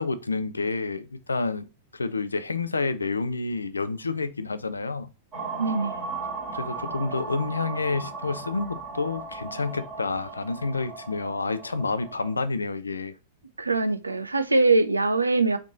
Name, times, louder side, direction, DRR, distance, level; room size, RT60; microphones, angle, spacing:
voice 1, 0.0-1.7 1.9-5.1 6.5-13.1, left 3 dB, 80° left, 0.4 m, -29 dB
sound 1, 5.3-12.4, right 4 dB, 30° right, 1.7 m, -37 dB
voice 2, 5.6-6.0 13.6-15.6, right 3 dB, 80° right, 0.5 m, -22 dB
4.3 x 3.0 x 3.9 m
figure-of-eight pair, 95°, 0 cm